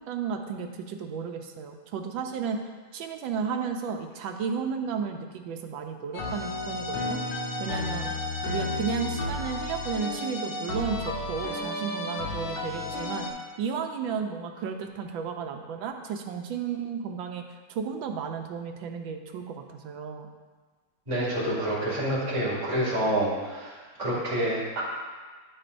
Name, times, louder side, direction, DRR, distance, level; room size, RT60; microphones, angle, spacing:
voice 1, 0.0-2.6 2.9-7.2 7.6-8.1 8.5-13.3 13.6-17.4 17.7-20.3, right 6 dB, 75° right, 4 dB, 1.4 m, -33 dB
sound 1, 6.1-13.3, left 2 dB, 65° left, 1.5 m, -32 dB
voice 2, 21.1-24.8, right 1 dB, 20° right, -8 dB, 2.1 m, -28 dB
9.7 x 6.4 x 2.6 m, 1.4 s
omnidirectional pair, 2.3 m